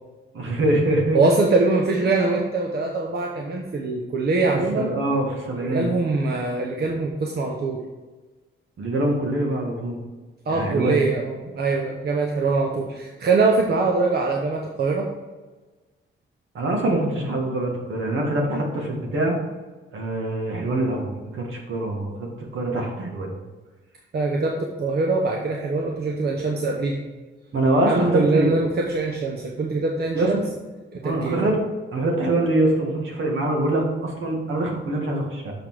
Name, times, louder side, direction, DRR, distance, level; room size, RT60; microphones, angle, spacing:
voice 1, 0.3-1.2 4.7-5.9 8.8-10.0 10.5-11.1 16.5-19.4 19.9-23.3 27.5-28.5 30.1-30.3 31.0-31.6 31.9-35.5, right 1 dB, 70° right, 0 dB, 2.0 m, -24 dB
voice 2, 1.1-5.0 5.5-7.8 10.5-15.1 24.1-27.0 27.9-30.4 30.9-31.5, right 3 dB, 50° right, 0 dB, 0.9 m, -23 dB
6.8 x 5.9 x 4.8 m, 1.2 s
cardioid pair, 125°, 21 cm